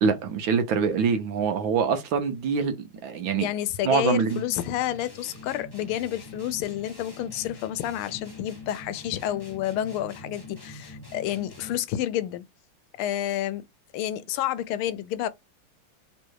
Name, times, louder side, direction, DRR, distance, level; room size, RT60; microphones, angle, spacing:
voice 1, 0.0-2.8 3.0-3.5 3.8-4.4, right 6 dB, 70° right, 1.4 m, -24 dB
voice 2, 3.4-12.4 13.0-13.6 13.9-15.3, left 12 dB, 80° left, 1.4 m, -29 dB
sound 1, 4.3-11.9, left 3 dB, 15° left, 1.2 m, -44 dB
3.5 x 3.1 x 4.6 m
omnidirectional pair, 2.4 m